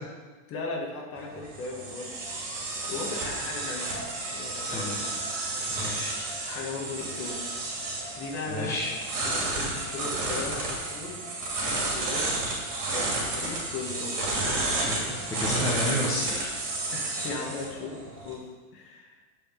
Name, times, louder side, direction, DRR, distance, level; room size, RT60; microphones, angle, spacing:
voice 1, 0.5-2.1 2.9-4.0 4.3-5.1 6.4-7.4 8.2-11.3 11.9-12.3 12.9-14.7 16.9-18.4 18.7-19.2, left 3 dB, 30° left, 0 dB, 1.5 m, -37 dB
sound 1, 1.2-18.3, right 2 dB, 40° right, 3.0 m, -32 dB
voice 2, 5.7-6.2 8.5-8.9 14.8-16.5, left 1 dB, 5° left, -6 dB, 1.1 m, -31 dB
9.5 x 5.1 x 5.1 m, 1.3 s
supercardioid pair, 155°, 45 cm